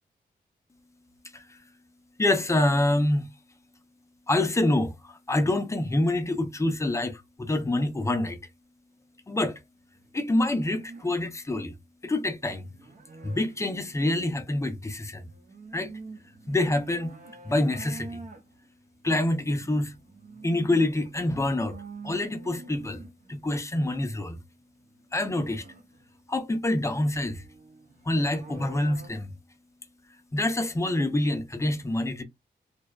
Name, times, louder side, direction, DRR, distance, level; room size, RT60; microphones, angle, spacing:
voice 1, 2.2-3.3 4.3-8.4 9.3-9.6 10.1-11.8 12.0-12.7 13.2-15.3 15.7-15.9 16.5-17.1 17.4-18.3 19.0-19.9 20.4-21.8 22.0-23.0 23.3-24.4 25.1-25.7 26.3-27.4 28.1-29.3 30.3-32.2, left 1 dB, 15° left, 0.4 m, -26 dB
sound 1, 9.9-11.2 12.3-14.4 14.9-23.6 24.8-29.1, right 3 dB, 50° right, 0.6 m, -48 dB
2.6 x 2.1 x 2.2 m
wide cardioid pair, 135°, 18 cm